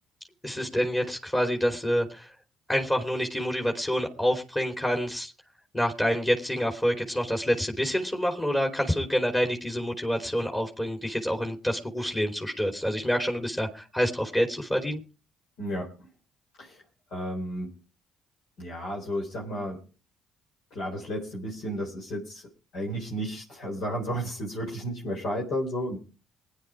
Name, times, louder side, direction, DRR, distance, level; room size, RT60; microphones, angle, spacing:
voice 1, 0.4-2.3 2.7-5.3 5.7-15.0, equal, 20° left, 3 dB, 3.2 m, -27 dB
voice 2, 15.6-15.9 16.6-16.8 17.1-17.7 18.6-19.8 20.7-26.0, equal, 65° left, -2 dB, 4.1 m, -33 dB
21.0 x 10.0 x 4.9 m, 0.35 s
hypercardioid pair, 50°, 0 cm